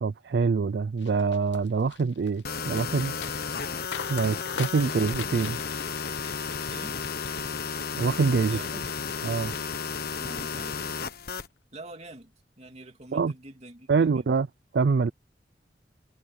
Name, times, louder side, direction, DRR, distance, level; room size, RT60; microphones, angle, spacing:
voice 1, 0.0-3.1 4.1-5.6 8.0-8.6 9.2-9.5 13.1-13.3 13.9-14.5 14.7-15.1, right 5 dB, 65° right, 0.4 m, -25 dB
sound 1, 1.0-9.3 9.6-10.2 10.6-10.9, left 7 dB, 80° left, 0.9 m, -43 dB
sound 2, 2.4-11.5, left 5 dB, 60° left, 1.2 m, -33 dB
voice 2, 6.6-7.0 8.5-8.8 10.2-11.2 11.7-14.3, right 2 dB, 40° right, 3.0 m, -46 dB
head